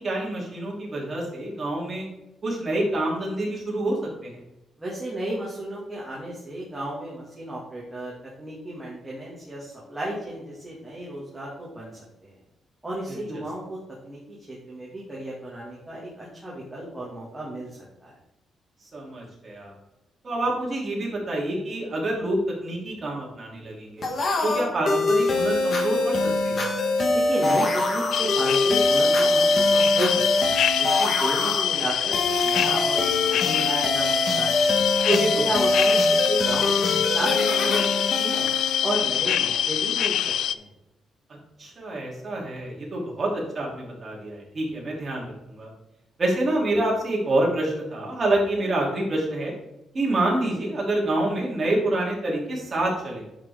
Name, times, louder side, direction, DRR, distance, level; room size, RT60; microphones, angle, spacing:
voice 1, 0.0-2.1 2.4-4.0 4.2-4.4 13.1-13.2 18.9-19.7 20.2-24.0 24.4-26.6 35.1-35.4 41.3-45.7 46.2-49.5 49.9-53.2, right 1 dB, 30° right, -3 dB, 3.0 m, -27 dB
voice 2, 4.8-11.9 12.2-12.3 12.8-13.8 14.0-17.7 18.0-18.1 27.1-34.7 35.0-38.5 38.8-40.7, right 1 dB, 10° right, -6 dB, 2.1 m, -32 dB
sound 1, 24.0-39.5, left 2 dB, 40° left, 1.5 m, -24 dB
sound 2, 28.1-40.5, left 10 dB, 80° left, 0.4 m, -25 dB
10.5 x 6.3 x 3.6 m, 0.93 s
cardioid pair, 160°, 0 cm